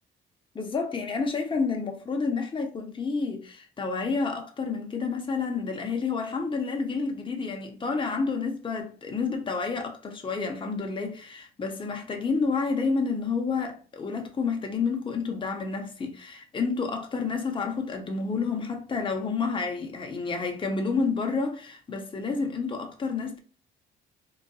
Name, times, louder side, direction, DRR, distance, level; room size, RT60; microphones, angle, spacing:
voice 1, 0.5-23.4, left 4 dB, 25° left, 0.7 m, -29 dB
3.8 x 2.5 x 2.3 m
cardioid pair, 90°, 20 cm